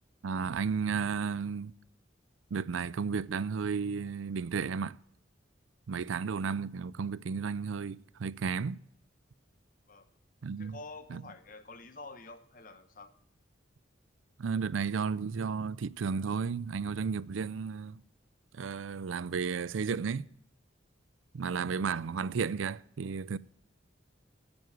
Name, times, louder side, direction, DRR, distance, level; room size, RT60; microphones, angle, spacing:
voice 1, 0.2-1.7 2.5-5.0 5.9-8.8 10.4-10.8 11.1-11.2 14.4-18.0 18.5-20.3 21.3-23.4, right 5 dB, 90° right, 0.4 m, -33 dB
voice 2, 10.6-13.1, left 3 dB, 45° left, 1.1 m, -48 dB
9.4 x 7.9 x 7.8 m
head